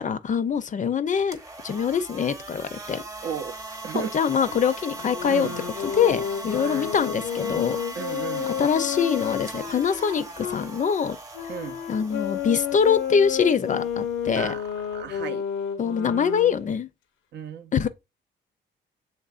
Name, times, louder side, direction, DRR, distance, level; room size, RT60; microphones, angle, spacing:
voice 1, 0.0-1.4 1.6-3.0 3.9-5.5 5.8-7.8 8.6-11.2 11.9-14.5 15.8-16.9 17.7-17.9, left 7 dB, 40° left, 0.5 m, -24 dB
sound 1, 1.2-15.2, right 2 dB, 15° right, 0.8 m, -40 dB
voice 2, 3.2-3.5 3.8-4.1 5.3-5.5 6.6-6.9 8.0-8.5 11.5-11.8 14.4-14.6 14.9-15.4 17.3-17.7, right 7 dB, 60° right, 0.6 m, -34 dB
sound 2, 4.9-10.6 11.3-16.7, left 8 dB, 90° left, 0.7 m, -31 dB
6.7 x 3.3 x 2.4 m
cardioid pair, 90°, 20 cm